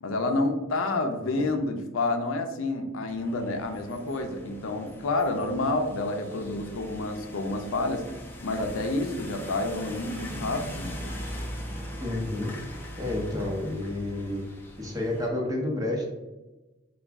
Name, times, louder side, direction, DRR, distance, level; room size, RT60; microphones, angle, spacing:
voice 1, 0.0-8.0 8.4-11.0, left 2 dB, 70° left, 5 dB, 0.5 m, -29 dB
sound 1, 3.1-15.3, equal, 10° left, 0.6 m, -40 dB
voice 2, 12.0-12.5 13.0-14.4 14.8-16.0, left 1 dB, 20° right, -1 dB, 0.9 m, -30 dB
4.9 x 2.3 x 3.4 m, 1.1 s
head